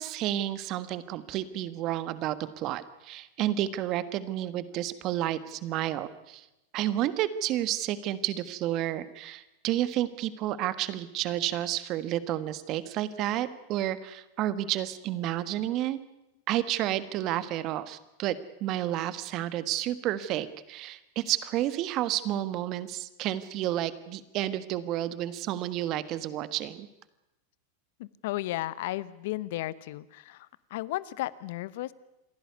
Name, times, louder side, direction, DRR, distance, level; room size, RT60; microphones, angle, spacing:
voice 1, 0.0-6.5 6.7-16.0 16.5-26.9, right 13 dB, 45° right, 14 dB, 1.5 m, -31 dB
voice 2, 28.0-31.9, left 16 dB, 65° left, 19 dB, 0.9 m, -34 dB
28.0 x 11.5 x 9.5 m, 0.93 s
hypercardioid pair, 110°, 0 cm